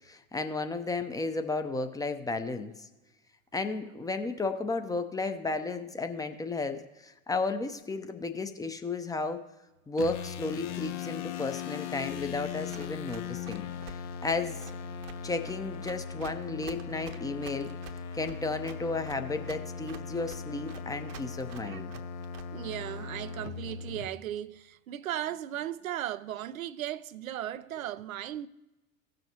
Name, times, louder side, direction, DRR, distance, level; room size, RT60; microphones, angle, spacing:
voice 1, 0.1-2.9 3.5-9.4 9.9-13.7 14.2-14.6 15.2-17.7 18.1-21.9, left 3 dB, 10° left, 0.6 m, -33 dB
sound 1, 10.0-24.1, left 6 dB, 60° left, 0.8 m, -39 dB
Run, 12.7-22.8, right 9 dB, 45° right, 0.9 m, -49 dB
voice 2, 21.6-22.0 22.5-28.5, right 12 dB, 80° right, 0.5 m, -37 dB
16.5 x 6.4 x 2.8 m
figure-of-eight pair, 75°, 41 cm